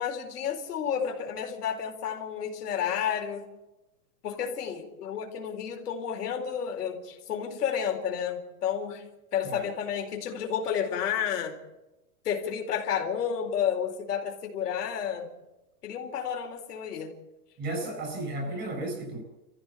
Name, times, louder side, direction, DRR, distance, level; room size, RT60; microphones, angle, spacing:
voice 1, 0.0-3.5 4.2-9.0 9.3-11.5 12.2-15.3 15.8-17.1, left 8 dB, 85° left, 2 dB, 4.5 m, -31 dB
voice 2, 17.6-19.2, right 2 dB, 25° right, 3 dB, 7.0 m, -34 dB
28.0 x 15.0 x 7.3 m, 1.0 s
supercardioid pair, 165°, 46 cm